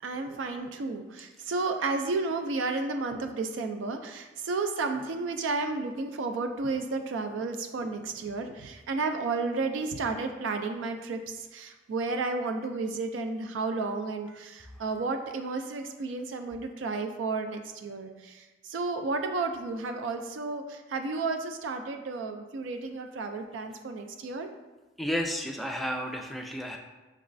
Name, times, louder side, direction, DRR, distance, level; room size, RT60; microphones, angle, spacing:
voice 1, 0.0-24.5, right 3 dB, 90° right, 6 dB, 0.4 m, -32 dB
voice 2, 25.0-26.8, equal, ahead, 2 dB, 0.3 m, -32 dB
5.3 x 3.0 x 2.5 m, 1.2 s
head